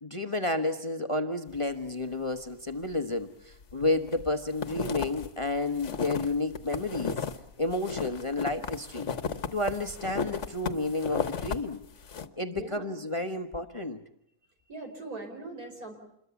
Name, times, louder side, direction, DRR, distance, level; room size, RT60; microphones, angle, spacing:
voice 1, 0.0-7.2 7.6-9.1 9.5-11.8 12.4-14.0, left 2 dB, 25° left, 7 dB, 1.0 m, -31 dB
sound 1, 3.6-4.2 4.5-7.4 7.7-11.6 11.9-12.3, left 6 dB, 55° left, 1.5 m, -34 dB
voice 2, 12.5-12.8 14.7-15.9, right 2 dB, 75° right, 4 dB, 5.6 m, -41 dB
27.5 x 22.0 x 7.1 m, 0.77 s
omnidirectional pair, 1.6 m